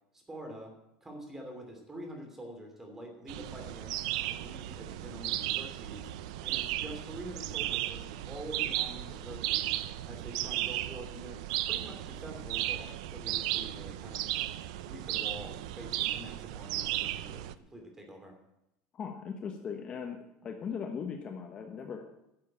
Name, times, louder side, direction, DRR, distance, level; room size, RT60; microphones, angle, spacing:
voice 1, 0.1-0.7 1.0-6.1 6.4-9.8 10.0-14.2 14.8-17.4 17.7-18.4, right 1 dB, 10° right, 3 dB, 2.8 m, -46 dB
sound 1, 3.3-17.5, right 14 dB, 75° right, 0.6 m, -35 dB
voice 2, 18.9-22.0, left 6 dB, 30° left, 4 dB, 1.2 m, -39 dB
11.5 x 7.5 x 8.8 m, 0.86 s
cardioid pair, 155°, 4 cm